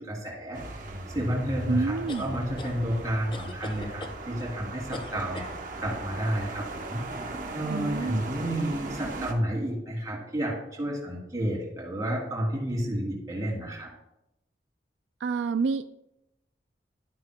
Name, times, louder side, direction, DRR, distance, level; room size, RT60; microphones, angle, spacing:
voice 1, 0.0-5.4 5.8-13.9, equal, 20° right, -3 dB, 3.1 m, -31 dB
sound 1, 0.5-9.3, right 2 dB, 45° right, 1.0 m, -38 dB
voice 2, 1.7-2.3 7.7-8.2 15.2-15.8, right 4 dB, 90° right, 10 dB, 0.4 m, -28 dB
sound 2, 2.1-2.8 3.3-4.2 4.9-5.6, left 2 dB, 30° left, 0.5 m, -40 dB
12.5 x 9.6 x 2.3 m, 0.87 s
head